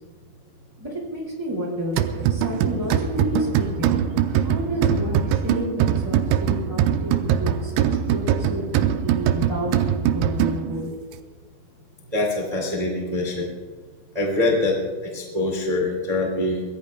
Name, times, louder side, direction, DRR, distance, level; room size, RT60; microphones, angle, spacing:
voice 1, 0.8-2.0 2.3-10.9, left 1 dB, 45° right, -3 dB, 0.3 m, -30 dB
sound 1, 2.0-10.9, right 9 dB, 85° right, 2.7 m, -22 dB
voice 2, 12.1-13.5 14.1-14.7 15.0-16.6, left 2 dB, 15° right, -1 dB, 1.3 m, -24 dB
25.0 x 17.5 x 2.3 m, 1.5 s
omnidirectional pair, 5.9 m